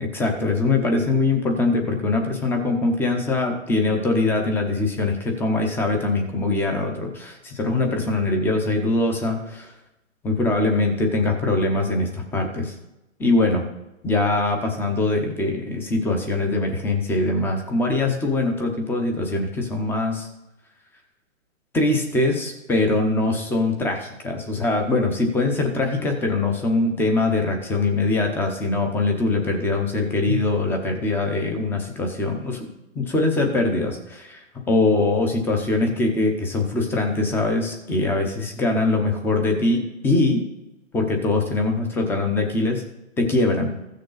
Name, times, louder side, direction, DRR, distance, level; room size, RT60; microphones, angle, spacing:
voice 1, 0.0-9.7 10.2-12.7 13.2-13.7 14.0-20.3 21.7-32.7 32.9-40.4 40.9-42.8 43.2-43.7, left 2 dB, 5° left, 4 dB, 0.7 m, -22 dB
15.0 x 6.6 x 3.9 m, 0.94 s
hypercardioid pair, 150°, 39 cm